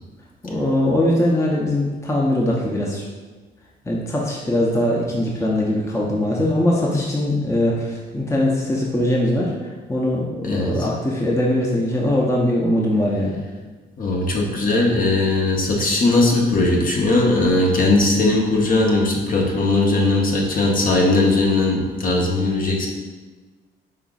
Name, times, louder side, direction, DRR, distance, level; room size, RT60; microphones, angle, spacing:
voice 1, 0.4-3.0 3.9-13.4 20.5-20.6, left 1 dB, 15° left, -3 dB, 0.7 m, -21 dB
voice 2, 10.4-10.9 14.0-22.9, left 2 dB, 45° left, -1 dB, 1.0 m, -19 dB
5.5 x 3.8 x 2.4 m, 1.3 s
cardioid pair, 90°, 20 cm